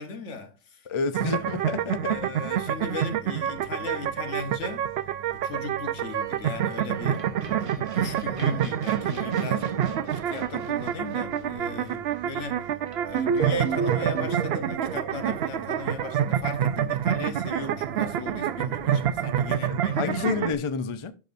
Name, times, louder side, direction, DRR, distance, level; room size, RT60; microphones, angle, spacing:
voice 1, 0.0-0.9 1.2-1.4 2.1-4.9 5.3-12.7 13.0-20.6, left 5 dB, 75° left, 1.3 m, -38 dB
voice 2, 0.9-2.3 19.5-21.1, left 4 dB, 35° left, 0.5 m, -30 dB
sound 1, 1.1-20.5, right 10 dB, 65° right, 0.7 m, -28 dB
sound 2, 6.1-14.2, right 2 dB, 30° right, 1.1 m, -43 dB
sound 3, 13.1-16.1, right 5 dB, 85° right, 1.1 m, -30 dB
12.0 x 4.9 x 2.5 m
omnidirectional pair, 1.2 m